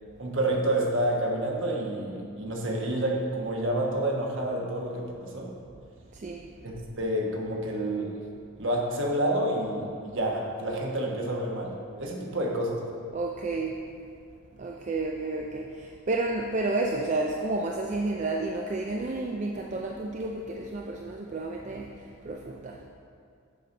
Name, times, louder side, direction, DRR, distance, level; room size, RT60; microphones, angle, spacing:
voice 1, 0.2-5.5 6.6-8.2 8.6-12.8, right 1 dB, 60° right, -1 dB, 1.3 m, -29 dB
voice 2, 6.1-6.5 13.1-13.8 14.6-22.9, right 2 dB, 35° right, 0 dB, 0.4 m, -31 dB
7.6 x 5.6 x 5.3 m, 2.3 s
head